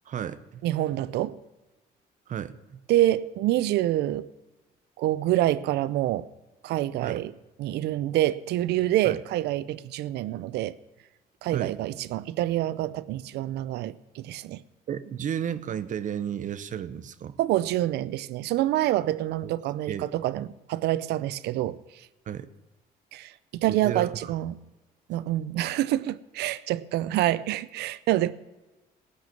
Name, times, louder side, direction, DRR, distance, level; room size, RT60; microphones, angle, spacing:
voice 1, 0.1-0.6 2.3-2.8 7.0-7.3 9.0-9.2 11.5-11.8 14.9-17.4 19.4-19.5 19.9-20.1 22.3-22.5 23.7-24.3, right 9 dB, 50° right, 0.8 m, -33 dB
voice 2, 0.6-1.4 2.9-4.3 5.0-6.3 6.6-7.3 7.6-10.7 11.4-14.6 17.4-21.8 23.1-24.6 25.1-28.3, right 14 dB, 75° right, 0.6 m, -27 dB
18.5 x 6.4 x 7.3 m
cardioid pair, 110°, 17 cm